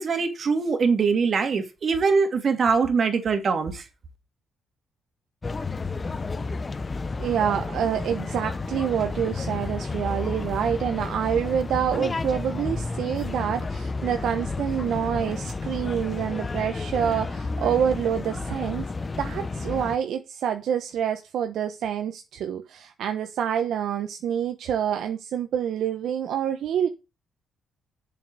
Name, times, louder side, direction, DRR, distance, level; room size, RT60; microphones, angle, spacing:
voice 1, 0.0-3.8, right 5 dB, 50° right, 2.5 m, -23 dB
sound 1, 5.4-20.0, left 3 dB, 30° left, 0.8 m, -31 dB
voice 2, 7.2-18.9 19.2-26.9, right 9 dB, 75° right, 1.1 m, -27 dB
7.5 x 6.6 x 6.8 m
cardioid pair, 90°, 0 cm